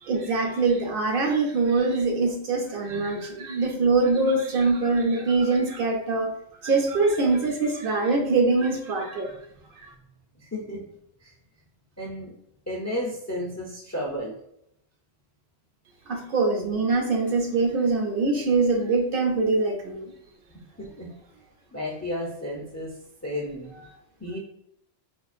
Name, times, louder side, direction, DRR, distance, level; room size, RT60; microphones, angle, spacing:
voice 1, 0.0-6.3 6.6-9.3 16.1-20.1, right 3 dB, 65° right, 3 dB, 0.8 m, -23 dB
voice 2, 2.9-3.2 10.4-10.8 11.2-11.3 12.0-12.3 12.7-14.3 20.5-21.1 21.7-22.9 23.2-23.8 24.2-24.4, left 1 dB, 25° left, -1 dB, 0.3 m, -33 dB
4.3 x 2.4 x 2.5 m, 0.74 s
omnidirectional pair, 1.1 m